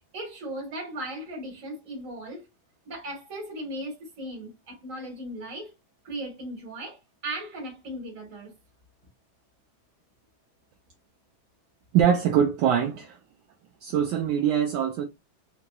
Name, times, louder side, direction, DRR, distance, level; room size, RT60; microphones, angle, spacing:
voice 1, 0.1-2.5 2.9-5.7 6.0-8.5, right 1 dB, 45° right, 1.7 m, -37 dB
voice 2, 11.9-13.2 13.8-15.1, right 8 dB, 75° right, 1.2 m, -23 dB
3.6 x 2.9 x 2.2 m
omnidirectional pair, 2.2 m